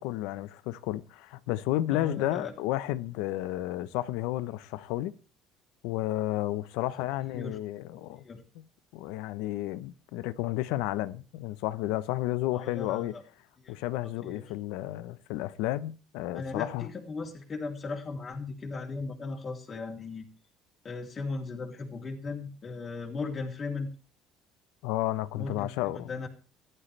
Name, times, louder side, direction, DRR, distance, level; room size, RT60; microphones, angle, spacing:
voice 1, 0.0-5.1 5.8-8.2 8.5-8.7 8.9-13.1 13.7-16.9 24.8-26.1, left 15 dB, 85° left, 0.8 m, -32 dB
voice 2, 1.9-2.5 7.2-7.6 8.2-8.4 12.5-13.2 13.6-13.8 14.2-14.4 16.3-20.3 20.8-23.9 25.3-26.3, left 3 dB, 30° left, 3.2 m, -37 dB
15.0 x 12.0 x 3.4 m
cardioid pair, 120°, 0 cm